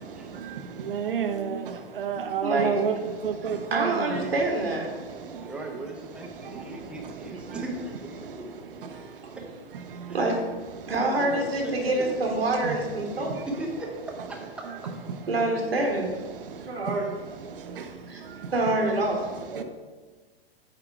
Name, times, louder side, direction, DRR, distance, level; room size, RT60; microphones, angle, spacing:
voice 1, 0.0-4.3 4.9-5.6 6.0-7.6 8.2-9.4 9.9-10.2 10.8-10.9 12.6-13.5 14.6-14.8 15.1-15.3 16.3-16.9 17.4-18.5 19.5-19.6, right 7 dB, 60° right, 0.7 m, -33 dB
voice 2, 2.4-2.8 3.7-4.9 10.1-10.4 10.9-13.3 15.3-16.1 16.6-17.1 18.1-18.2 18.5-19.6, right 2 dB, 75° right, 1.3 m, -26 dB
voice 3, 5.5-8.5 9.4-9.5 10.1-10.2 11.0-12.3 13.6-13.9 14.3-14.9, right 1 dB, 5° right, 0.7 m, -38 dB
7.9 x 2.9 x 4.6 m
figure-of-eight pair, 105°, 30 cm